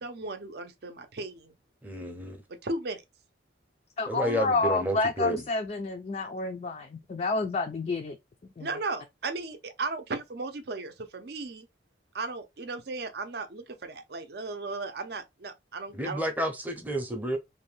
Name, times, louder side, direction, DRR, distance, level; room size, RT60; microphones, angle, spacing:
voice 1, 0.0-1.5 2.6-3.0 8.6-11.7 12.1-16.2, right 3 dB, 55° right, 0.5 m, -36 dB
voice 2, 1.8-2.4 4.1-5.4 15.9-17.4, right 1 dB, 10° right, 0.6 m, -30 dB
voice 3, 4.0-8.2 8.6-8.8, left 3 dB, 35° left, 0.3 m, -29 dB
2.7 x 2.2 x 3.1 m
head